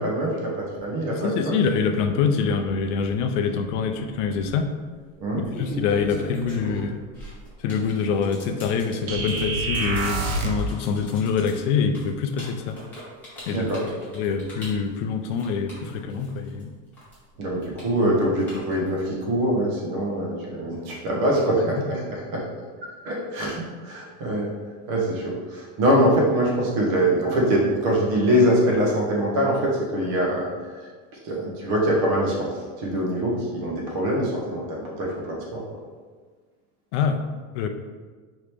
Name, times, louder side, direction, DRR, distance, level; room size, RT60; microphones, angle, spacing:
voice 1, 0.0-1.3 5.2-5.4 13.5-13.8 17.4-22.0 22.3-22.4 23.0-24.5 24.9-30.5 31.2-32.5 32.8-35.6, equal, 45° right, -2 dB, 1.2 m, -23 dB
voice 2, 1.1-4.7 5.4-7.0 7.6-12.8 13.5-13.7 14.1-16.7 36.9-37.2 37.5-37.7, left 6 dB, 60° left, 6 dB, 0.6 m, -25 dB
sound 1, 4.2-4.5 5.3-16.6 16.9-19.0, equal, 5° left, 1.5 m, -39 dB
sound 2, 9.1-10.7, right 2 dB, 60° right, 0.8 m, -26 dB
4.8 x 3.1 x 3.5 m, 1.5 s
supercardioid pair, 165°, 41 cm